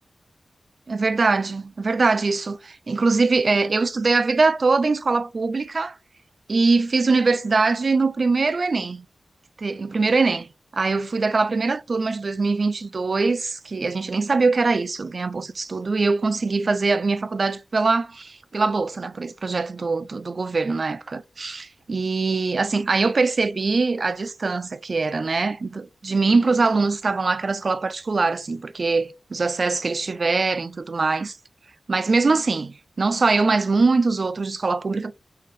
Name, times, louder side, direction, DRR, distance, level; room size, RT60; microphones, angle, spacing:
voice 1, 0.9-6.0 6.5-9.1 9.6-10.4 10.8-31.4 31.9-35.1, right 3 dB, 55° right, 0.3 m, -22 dB
4.1 x 3.7 x 3.1 m
wide cardioid pair, 70°, 0 cm